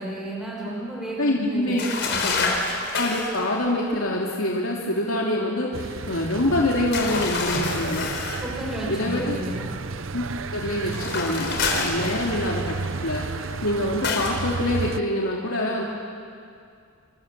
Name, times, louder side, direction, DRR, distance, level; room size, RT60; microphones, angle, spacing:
voice 1, 0.0-2.5 8.4-9.7 12.0-12.2, right 1 dB, ahead, -5 dB, 6.5 m, -33 dB
voice 2, 1.2-1.8 2.2-2.4 2.9-8.1 8.9-9.4 10.1-10.2 10.5-15.8, left 1 dB, 85° left, -3 dB, 3.1 m, -25 dB
sound 1, 1.8-3.4 6.9-8.5 10.8-12.6 14.0-14.4, left 4 dB, 55° left, 4.4 m, -27 dB
sound 2, 5.7-15.0, right 4 dB, 65° right, 0.8 m, -32 dB
28.5 x 27.0 x 7.6 m, 2.3 s
head